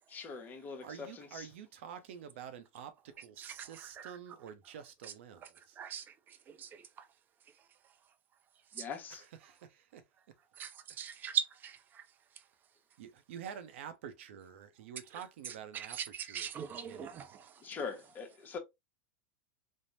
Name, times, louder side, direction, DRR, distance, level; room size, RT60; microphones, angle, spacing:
voice 1, 0.1-1.5 8.7-9.2 17.6-18.6, left 5 dB, 25° left, 0.8 m, -42 dB
voice 2, 0.8-5.8 9.1-10.0 10.9-11.0 13.0-16.0 16.3-17.2, right 8 dB, 70° right, 0.6 m, -48 dB
voice 3, 3.4-4.2 5.0-5.1 5.4-5.5 5.8-7.1 7.4-8.0 8.7-8.9 10.5-12.5 15.4-17.8, right 8 dB, 30° right, 0.5 m, -41 dB
3.4 x 2.1 x 2.6 m
hypercardioid pair, 115°, 7 cm